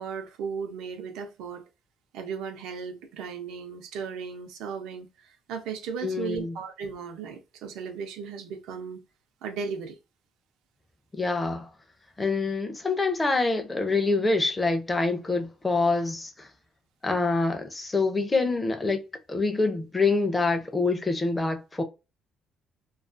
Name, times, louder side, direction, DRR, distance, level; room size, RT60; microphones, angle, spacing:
voice 1, 0.0-1.7 2.1-9.0 9.4-10.0, right 6 dB, 85° right, 0.6 m, -36 dB
voice 2, 6.0-6.5 11.1-11.7 12.2-16.5 17.0-19.0 19.3-21.8, left 3 dB, 15° left, 0.4 m, -26 dB
2.3 x 2.3 x 2.5 m
cardioid pair, 160°, 0 cm